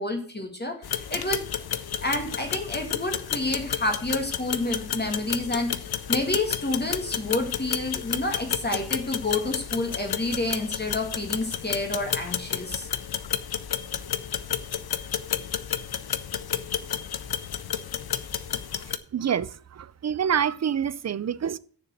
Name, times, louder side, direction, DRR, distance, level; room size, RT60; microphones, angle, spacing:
voice 1, 0.0-1.5 2.0-12.9, left 2 dB, 25° left, 2.1 m, -29 dB
sound 1, 0.8-19.0, left 9 dB, 65° left, 0.7 m, -31 dB
voice 2, 19.1-21.6, right 8 dB, 40° right, 0.5 m, -27 dB
6.8 x 6.7 x 7.6 m
wide cardioid pair, 115°, 41 cm